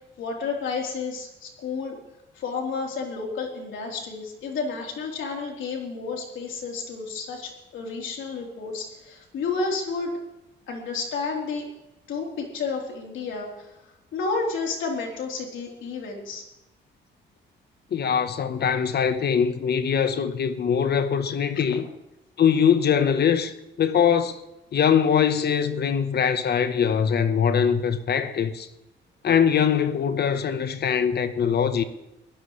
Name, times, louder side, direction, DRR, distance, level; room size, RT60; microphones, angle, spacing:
voice 1, 0.2-2.0 2.3-10.1 10.7-11.7 12.1-13.8 14.1-16.4, left 4 dB, 75° left, 3.9 m, -31 dB
voice 2, 17.9-21.9 22.4-24.4 24.7-28.7 29.2-31.8, left 7 dB, 55° left, 1.2 m, -22 dB
23.0 x 16.0 x 3.3 m
cardioid pair, 90°, 20 cm